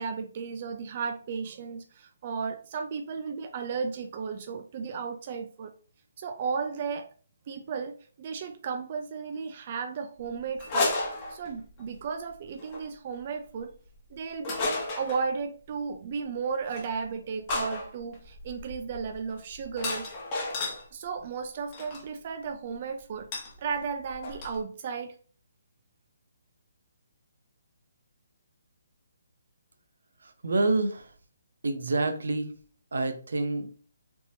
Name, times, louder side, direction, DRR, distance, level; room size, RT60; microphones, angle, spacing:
voice 1, 0.0-5.7 6.2-7.1 7.5-10.9 11.3-13.7 14.1-20.1 20.9-23.3 23.6-25.2, right 5 dB, 40° right, 7 dB, 0.3 m, -34 dB
sound 1, 10.6-11.8 12.6-12.8 14.4-15.2 16.7-16.9 17.5-20.8 21.7-22.0 23.3-23.5 23.8-23.9 24.1-24.6, left 2 dB, 25° left, 1.0 m, -32 dB
voice 2, 30.4-31.1 31.6-32.5 32.9-33.7, right 2 dB, 80° right, 7 dB, 0.6 m, -27 dB
3.4 x 2.9 x 2.7 m, 0.42 s
hypercardioid pair, 160°, 0 cm